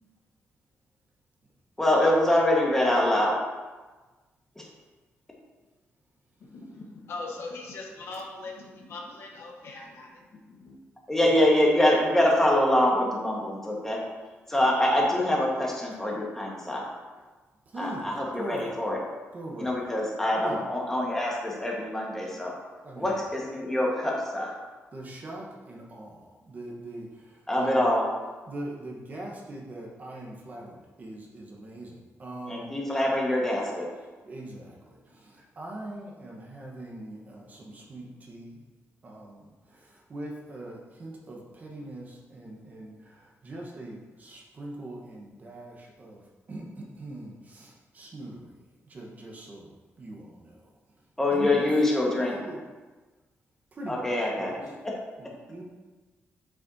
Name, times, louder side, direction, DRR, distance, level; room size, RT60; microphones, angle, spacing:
voice 1, 1.8-3.4 4.5-4.7 11.1-14.0 14.5-16.8 17.8-19.0 19.6-22.6 22.9-24.5 27.5-28.0 32.5-33.9 51.2-52.4 53.9-55.0, left 1 dB, 10° left, -3 dB, 1.4 m, -25 dB
voice 2, 6.4-10.8, left 3 dB, 60° left, 0 dB, 1.2 m, -41 dB
voice 3, 17.7-18.7 19.3-19.7 20.3-20.6 22.8-23.1 24.9-27.9 28.5-32.7 34.2-38.6 39.0-50.7 51.3-51.7 52.1-52.6 53.7-54.0 54.4-54.5 55.2-55.6, right 1 dB, 35° right, -2 dB, 1.1 m, -42 dB
7.5 x 6.0 x 2.7 m, 1.3 s
wide cardioid pair, 150°, 5 cm